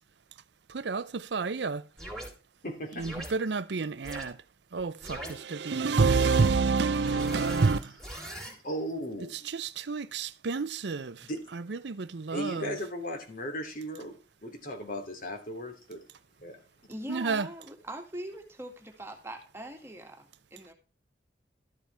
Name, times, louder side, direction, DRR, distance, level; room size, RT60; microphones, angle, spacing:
voice 1, 0.7-1.8 3.0-4.4 4.7-7.9 9.5-11.3 11.5-12.7 17.1-17.5, right 4 dB, 75° right, 0.6 m, -28 dB
sound 1, 2.0-2.3 3.0-3.3 4.0-4.2 5.0-5.3 6.0-6.5 7.0-8.5, right 1 dB, 5° left, 3.8 m, -40 dB
voice 2, 2.6-3.3 8.3-9.5 11.2-11.4 11.8-11.9 12.3-14.1 14.4-16.0 16.4-16.6, equal, 50° left, 3.0 m, -37 dB
voice 3, 16.9-18.7 19.0-20.1 20.5-20.7, right 1 dB, 15° right, 2.1 m, -41 dB
13.5 x 7.3 x 3.4 m
head